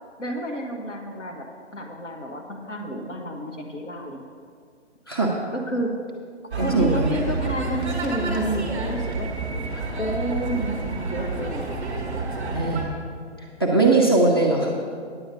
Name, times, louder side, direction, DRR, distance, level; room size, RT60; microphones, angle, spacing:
voice 1, 0.2-1.5 1.7-4.3 5.5-6.0 6.5-9.3 10.0-11.7 12.2-12.6, right 1 dB, 85° left, 2 dB, 1.4 m, -30 dB
sound 1, 6.5-12.8, right 3 dB, 5° right, 0.9 m, -29 dB
voice 2, 6.6-7.1 12.4-12.9 13.6-14.7, right 3 dB, 20° left, -2 dB, 0.6 m, -20 dB
9.8 x 8.2 x 5.3 m, 2.1 s
hypercardioid pair, 180°, 35 cm